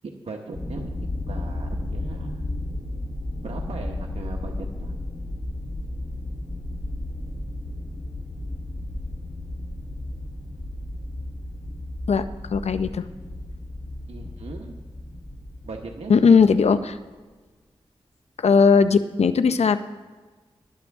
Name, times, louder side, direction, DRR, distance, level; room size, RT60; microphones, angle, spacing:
voice 1, 0.0-0.9 1.3-2.4 3.4-4.9 14.1-14.7 15.6-16.1, right 3 dB, 75° right, 0 dB, 1.1 m, -38 dB
sound 1, 0.5-17.0, left 1 dB, 35° left, 2.9 m, -33 dB
voice 2, 12.5-13.1 16.1-17.0 18.4-19.8, left 5 dB, 80° left, 12 dB, 0.6 m, -18 dB
20.0 x 7.5 x 3.6 m, 1.4 s
cardioid pair, 40°, 11 cm